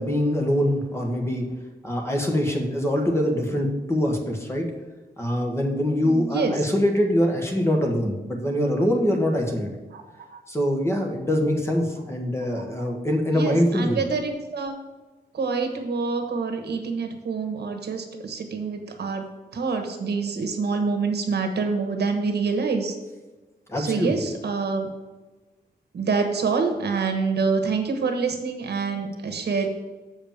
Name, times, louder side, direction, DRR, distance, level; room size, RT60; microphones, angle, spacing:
voice 1, 0.0-1.4 1.8-4.7 5.2-9.7 10.5-14.0 23.7-24.2, equal, 15° left, 2 dB, 1.3 m, -24 dB
voice 2, 6.0-6.6 9.9-10.4 12.5-12.9 13.3-14.8 15.3-19.2 19.5-22.9 23.8-24.9 25.9-29.7, right 4 dB, 80° right, 5 dB, 1.3 m, -26 dB
7.4 x 5.0 x 7.2 m, 1.2 s
wide cardioid pair, 170°, 17 cm